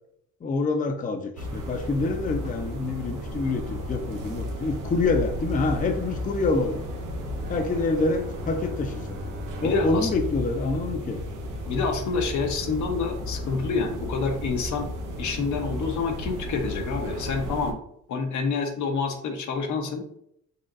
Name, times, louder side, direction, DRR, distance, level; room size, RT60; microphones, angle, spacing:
voice 1, 0.4-6.8 7.5-9.2 9.6-11.2, left 3 dB, 25° left, 5 dB, 0.5 m, -26 dB
sound 1, 1.4-17.7, equal, 90° right, 0.8 m, -34 dB
Bowed string instrument, 7.4-11.8, left 2 dB, 35° right, 0.5 m, -42 dB
voice 2, 9.6-10.1 11.7-14.9 15.2-17.8 18.1-20.0, left 4 dB, 75° left, 3 dB, 0.9 m, -27 dB
4.1 x 3.8 x 2.5 m, 0.71 s
cardioid pair, 90°, 30 cm